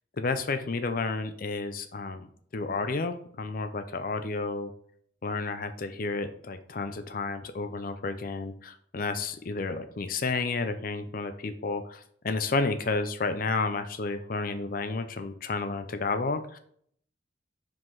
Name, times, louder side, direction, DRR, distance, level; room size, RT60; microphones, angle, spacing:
voice 1, 0.2-2.3 2.5-4.7 5.2-16.6, left 3 dB, 45° left, 9 dB, 0.5 m, -31 dB
5.7 x 5.0 x 4.7 m, 0.63 s
head